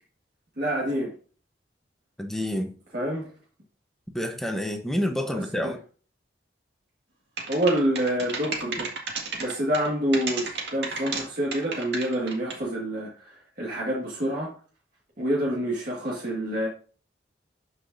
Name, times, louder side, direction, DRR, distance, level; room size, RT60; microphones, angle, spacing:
voice 1, 0.6-1.1 2.9-3.3 5.3-5.8 7.5-8.9 9.4-14.5 15.2-16.7, right 1 dB, 50° right, 1.8 m, -27 dB
voice 2, 2.2-2.7 4.1-5.8, left 1 dB, ahead, 0.9 m, -28 dB
sound 1, 7.4-9.9 10.1-11.2 11.5-12.7, right 4 dB, 70° right, 2.0 m, -32 dB
12.0 x 4.9 x 2.7 m
head